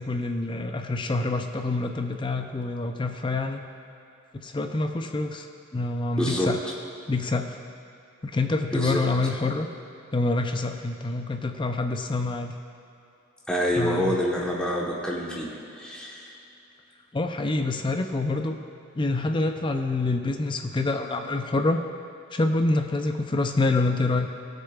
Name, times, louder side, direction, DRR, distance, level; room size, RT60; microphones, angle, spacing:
voice 1, 0.0-3.6 4.3-5.5 5.7-6.6 7.1-7.6 8.2-9.7 10.1-12.5 13.8-14.2 17.1-18.6 19.0-21.8 22.3-24.3, left 2 dB, 25° left, 5 dB, 0.5 m, -26 dB
voice 2, 6.1-6.5 8.7-9.0 13.5-15.5 15.8-16.4, equal, 5° left, -4 dB, 1.1 m, -27 dB
19.0 x 6.7 x 2.4 m, 2.7 s
head